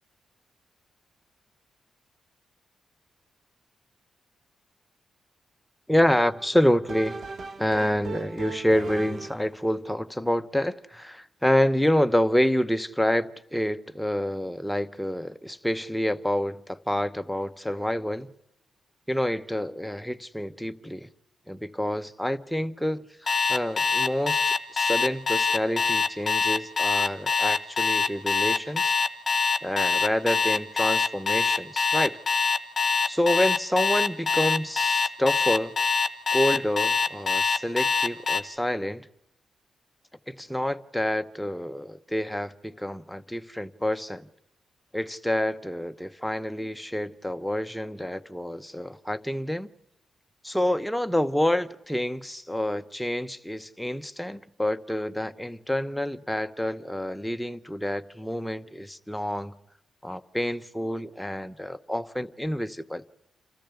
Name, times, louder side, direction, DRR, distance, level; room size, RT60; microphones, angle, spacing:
voice 1, 5.9-7.2 7.6-18.3 19.1-21.1 21.5-28.9 29.6-32.2 33.0-35.8 36.3-39.1 40.3-44.3 44.9-49.7 50.4-59.5 60.0-63.0, left 1 dB, 5° left, 0.9 m, -28 dB
sound 1, 6.2-9.6, right 4 dB, 60° right, 1.1 m, -39 dB
Alarm, 23.3-38.4, left 5 dB, 40° left, 1.4 m, -23 dB
27.5 x 14.0 x 8.2 m
cardioid pair, 60°, 0 cm